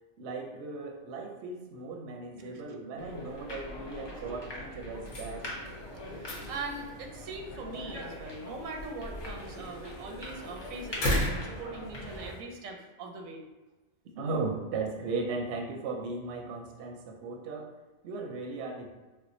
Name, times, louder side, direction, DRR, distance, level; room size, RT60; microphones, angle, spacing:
voice 1, 0.2-5.4 14.1-17.7 18.0-18.9, right 3 dB, 65° right, 2 dB, 0.8 m, -36 dB
voice 2, 2.3-2.7 6.1-13.4, right 3 dB, 85° right, 2 dB, 1.0 m, -41 dB
sound 1, 3.0-12.3, left 1 dB, 35° left, 0.4 m, -42 dB
sound 2, 4.9-12.4, left 1 dB, 75° left, 1.1 m, -37 dB
4.4 x 2.1 x 2.6 m, 1.2 s
omnidirectional pair, 1.4 m